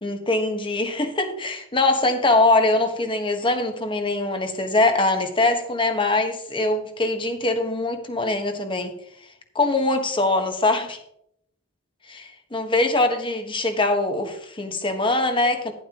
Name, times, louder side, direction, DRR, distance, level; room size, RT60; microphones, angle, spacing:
voice 1, 0.0-8.9 9.5-11.0 12.1-15.7, left 2 dB, 25° left, 6 dB, 1.3 m, -22 dB
11.5 x 11.0 x 3.0 m, 0.72 s
head